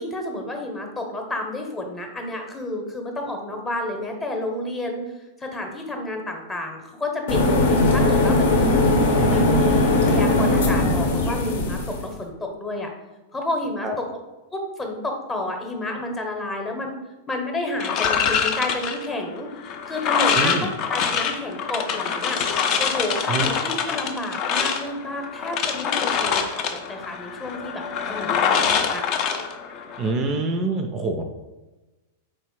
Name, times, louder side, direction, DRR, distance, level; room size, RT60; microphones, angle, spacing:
voice 1, 0.0-5.0 5.4-8.9 9.3-12.9 13.3-13.9 14.5-16.9 17.3-19.5 19.9-22.4 22.8-29.0, left 1 dB, 15° left, 2 dB, 0.8 m, -30 dB
sound 1, 7.3-12.1, left 2 dB, 60° left, 0.8 m, -19 dB
voice 2, 9.2-9.5 13.8-13.9 20.3-20.7 23.3-23.5 30.0-31.2, right 3 dB, 30° right, 5 dB, 0.4 m, -25 dB
sound 2, 17.8-30.1, left 7 dB, 35° left, 0.4 m, -25 dB
4.3 x 3.3 x 3.1 m, 1.1 s
figure-of-eight pair, 95°, 0 cm